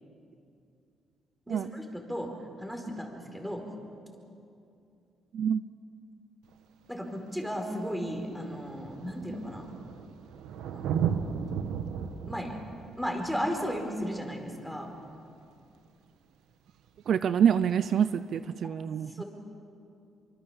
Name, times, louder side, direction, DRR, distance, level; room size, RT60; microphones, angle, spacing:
voice 1, 1.5-2.3 2.6-3.6 6.9-9.7 10.7-11.6 12.3-12.6 13.0-14.9 19.1-19.2, equal, ahead, 3 dB, 4.7 m, -35 dB
Thunder, 6.5-6.6 7.6-7.7 7.9-15.2 16.9-17.0, right 8 dB, 85° right, 1.3 m, -36 dB
voice 2, 17.1-19.2, right 8 dB, 65° right, 13 dB, 0.7 m, -26 dB
25.5 x 25.0 x 7.2 m, 2.6 s
cardioid pair, 90°, 0 cm